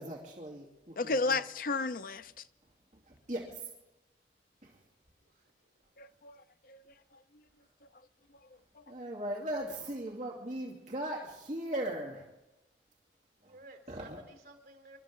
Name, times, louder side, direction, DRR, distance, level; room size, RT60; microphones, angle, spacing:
voice 1, 0.0-1.1 3.1-3.7 4.6-4.7 8.9-12.2 13.4-13.5 13.9-14.2, right 1 dB, 45° right, 2.5 m, -38 dB
voice 2, 1.0-2.4 6.0-6.8 7.1-7.4 8.7-8.8, left 3 dB, 50° left, 0.5 m, -34 dB
voice 3, 13.4-15.0, right 2 dB, 65° right, 3.7 m, -54 dB
27.5 x 13.0 x 3.8 m
head